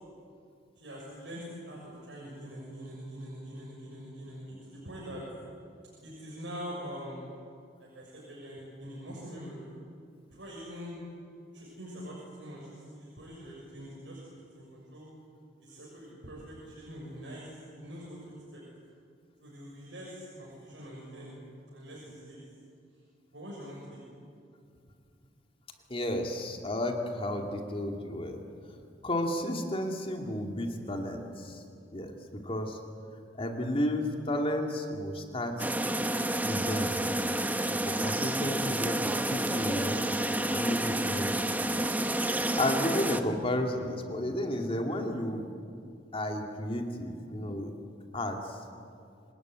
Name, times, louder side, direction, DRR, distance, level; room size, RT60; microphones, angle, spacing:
voice 1, 0.8-5.2 6.0-7.2 7.8-9.7 10.3-11.0 11.5-15.1 15.6-18.2 18.5-18.6 19.4-21.3 21.7-22.4 23.3-24.0, equal, 85° right, -5 dB, 6.6 m, -44 dB
voice 2, 25.9-28.4 29.0-31.6 31.9-32.1 32.4-32.8 33.4-35.5 36.4-36.9 37.7-40.0 40.5-41.3 42.3-45.5 46.1-47.7 48.1-48.6, left 1 dB, 30° left, 3 dB, 2.4 m, -32 dB
sound 1, 35.6-43.2, right 1 dB, 10° right, 1.0 m, -30 dB
26.5 x 19.5 x 9.3 m, 2.4 s
head